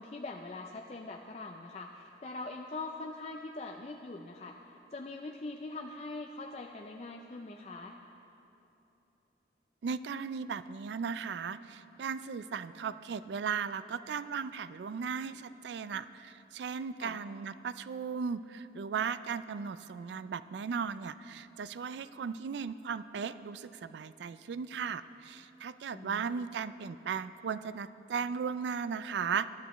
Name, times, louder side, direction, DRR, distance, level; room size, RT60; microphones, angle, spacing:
voice 1, 0.0-4.6 4.9-8.0 17.0-17.2 25.9-26.4, left 2 dB, 35° left, 2 dB, 0.4 m, -42 dB
voice 2, 9.8-29.5, right 6 dB, 75° right, 14 dB, 0.3 m, -36 dB
20.0 x 11.5 x 3.0 m, 2.9 s
head